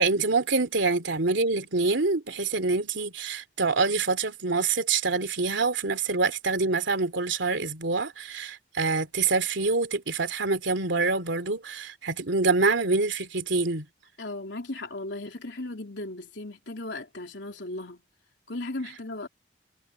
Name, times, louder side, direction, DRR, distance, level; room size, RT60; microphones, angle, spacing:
voice 1, 0.0-13.9, right 3 dB, 90° right, 2.8 m, -26 dB
voice 2, 14.2-18.0 18.5-19.3, left 2 dB, 70° left, 3.6 m, -36 dB
head